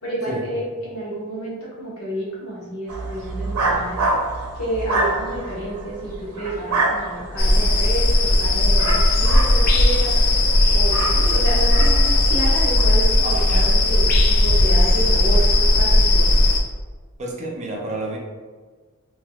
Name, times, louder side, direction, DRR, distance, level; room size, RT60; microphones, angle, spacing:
voice 1, 0.0-4.0 4.5-10.2 10.7-16.4, right 1 dB, 80° left, -6 dB, 1.2 m, -30 dB
sound 1, 2.9-12.8, right 2 dB, 75° right, 0.6 m, -27 dB
sound 2, 7.4-16.6, left 1 dB, 40° left, 0.3 m, -17 dB
voice 2, 13.2-13.7 17.2-18.2, right 2 dB, 30° right, -1 dB, 0.5 m, -29 dB
3.5 x 2.7 x 2.3 m, 1.4 s
head